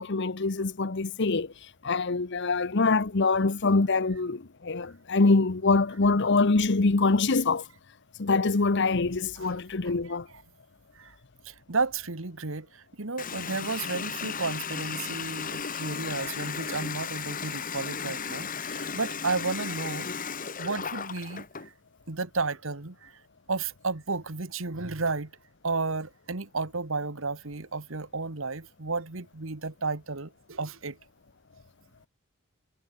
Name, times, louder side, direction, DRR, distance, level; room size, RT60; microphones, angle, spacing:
voice 1, 0.0-1.5 1.8-7.6 8.2-10.3, left 3 dB, 55° left, 0.9 m, -24 dB
voice 2, 9.8-10.2 10.9-11.1 11.4-20.2 20.6-21.7 22.1-23.1 23.5-25.3 25.6-31.0, right 3 dB, 65° right, 1.7 m, -33 dB
Water tap faucet, 13.2-21.7, left 6 dB, 40° left, 2.0 m, -35 dB
head